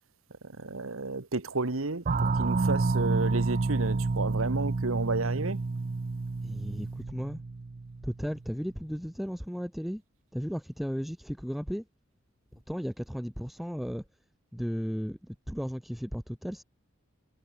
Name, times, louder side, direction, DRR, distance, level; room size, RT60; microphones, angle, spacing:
voice 1, 0.6-5.6, right 3 dB, 85° right, 1.5 m, -32 dB
sound 1, 2.1-8.4, right 3 dB, 40° right, 0.5 m, -29 dB
voice 2, 6.4-7.4 8.0-10.0 10.3-11.9 12.5-14.0 14.5-16.6, equal, ahead, 1.3 m, -35 dB
head